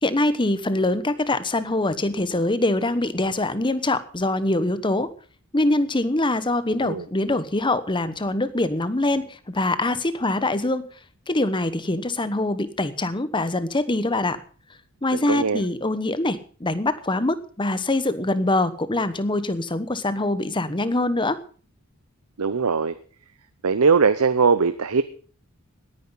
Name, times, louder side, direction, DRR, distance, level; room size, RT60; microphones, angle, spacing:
voice 1, 0.0-5.1 5.5-10.9 11.3-14.4 15.0-21.4, left 2 dB, 20° left, 13 dB, 1.0 m, -24 dB
voice 2, 15.1-15.6 22.4-22.9 23.6-25.0, right 5 dB, 85° right, 12 dB, 0.8 m, -20 dB
18.0 x 9.8 x 5.5 m, 0.41 s
head